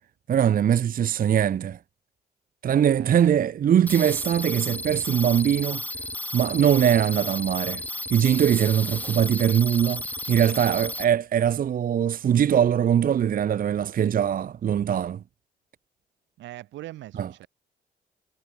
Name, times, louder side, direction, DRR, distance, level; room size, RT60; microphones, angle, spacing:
voice 1, 0.3-1.8 2.6-5.8 6.3-7.8 8.1-15.2 17.2-17.3, right 9 dB, 50° right, 0.6 m, -22 dB
voice 2, 2.9-3.4 16.4-17.5, right 15 dB, 85° right, 3.9 m, -41 dB
sound 1, 3.9-11.0, left 1 dB, 10° left, 1.6 m, -33 dB
cardioid pair, 70°, 19 cm